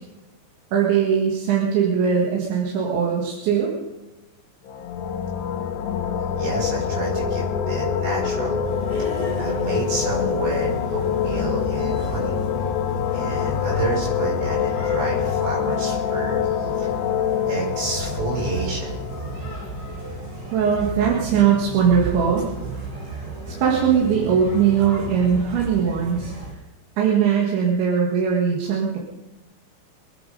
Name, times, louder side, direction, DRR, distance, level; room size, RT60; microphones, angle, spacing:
voice 1, 0.7-3.7 20.5-22.5 23.5-26.3 27.0-29.0, right 7 dB, 90° right, -2 dB, 4.2 m, -20 dB
sound 1, 4.7-20.2, left 8 dB, 75° left, 3.1 m, -26 dB
voice 2, 6.4-8.6 9.0-12.4 13.1-16.9 17.5-19.3, right 3 dB, 75° right, -3 dB, 8.2 m, -29 dB
sound 2, 8.6-26.5, right 3 dB, 50° right, 6.9 m, -34 dB
24.0 x 10.0 x 5.4 m, 1.0 s
omnidirectional pair, 5.1 m